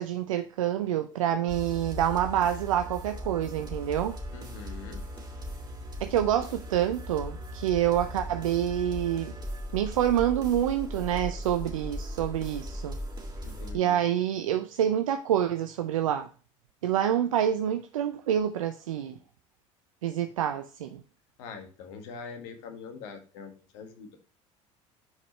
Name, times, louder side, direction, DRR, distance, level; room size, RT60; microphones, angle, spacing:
voice 1, 0.0-4.2 6.0-9.3 9.7-13.0 13.7-16.3 16.8-19.1 20.0-21.0, right 10 dB, 80° right, 0.5 m, -27 dB
sound 1, 1.5-13.7, equal, 25° right, 2.7 m, -38 dB
voice 2, 4.3-5.1 13.4-14.0 21.4-24.2, left 5 dB, 70° left, 1.7 m, -43 dB
9.5 x 4.7 x 3.2 m
hypercardioid pair, 65°, 17 cm